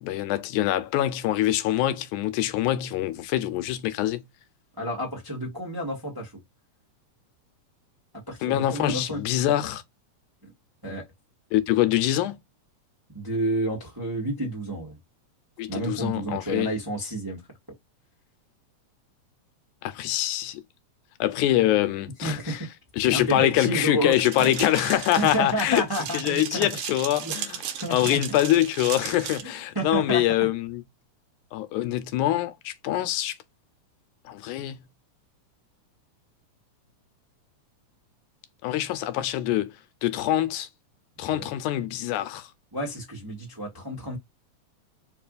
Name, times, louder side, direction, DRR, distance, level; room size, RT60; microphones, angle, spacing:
voice 1, 0.0-4.3 8.4-9.8 11.5-12.4 15.6-16.7 19.8-20.6 21.2-22.6 23.0-25.8 26.1-27.6 27.9-30.8 31.5-33.4 34.3-34.8 38.6-39.7 40.0-40.7 41.2-42.5, left 13 dB, 85° left, 2.1 m, -24 dB
voice 2, 4.8-6.3 8.3-9.2 10.8-11.1 13.1-15.0 15.7-17.4 22.2-22.7 23.1-24.5 25.2-26.7 27.2-27.3 27.8-28.4 29.4-29.5 29.7-30.5 41.2-41.5 42.7-44.2, right 1 dB, 15° right, 0.8 m, -30 dB
sound 1, 24.1-29.4, right 9 dB, 75° right, 2.1 m, -36 dB
4.7 x 3.0 x 2.4 m
omnidirectional pair, 3.5 m